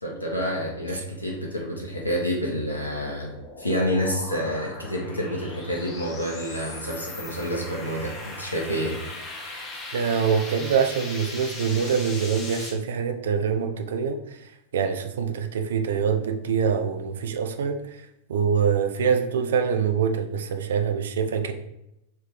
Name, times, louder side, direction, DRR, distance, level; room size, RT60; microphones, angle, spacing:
voice 1, 0.0-3.3 3.6-9.0, equal, 85° left, 0.9 m, -28 dB
sound 1, 2.6-12.7, left 2 dB, 25° left, 1.0 m, -39 dB
voice 2, 9.9-18.0 18.3-21.5, right 6 dB, 60° right, 0.4 m, -25 dB
3.4 x 3.2 x 4.8 m
figure-of-eight pair, 90°, 0 cm